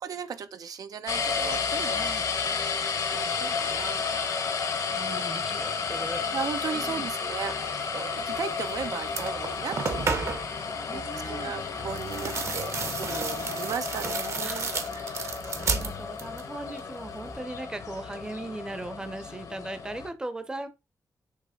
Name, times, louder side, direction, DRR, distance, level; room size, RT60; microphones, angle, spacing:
voice 1, 0.0-2.0 3.1-4.0 5.0-5.5 6.3-7.6 7.9-10.6 10.9-15.4, right 7 dB, 80° right, 0.6 m, -37 dB
sound 1, 1.1-20.1, left 5 dB, 70° left, 1.2 m, -32 dB
voice 2, 1.9-2.3 4.9-6.2 6.7-7.1 10.9-11.6 14.4-20.7, right 2 dB, 15° right, 0.6 m, -39 dB
sound 2, 8.6-8.8 9.1-10.6 11.9-16.5 16.8-17.4, right 5 dB, 55° right, 0.9 m, -32 dB
6.6 x 3.0 x 4.9 m
wide cardioid pair, 170°, 6 cm